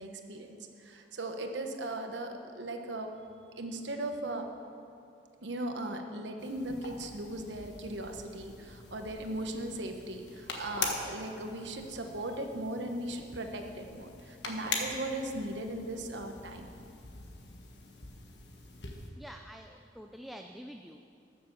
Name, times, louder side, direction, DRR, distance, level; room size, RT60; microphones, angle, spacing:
voice 1, 0.0-3.1 3.6-4.5 5.4-16.7, right 1 dB, 85° right, 5 dB, 1.1 m, -38 dB
sound 1, 6.4-19.1, left 3 dB, 70° left, 1.5 m, -43 dB
voice 2, 19.2-21.0, equal, ahead, 4 dB, 0.3 m, -47 dB
13.0 x 7.0 x 6.9 m, 2.5 s
head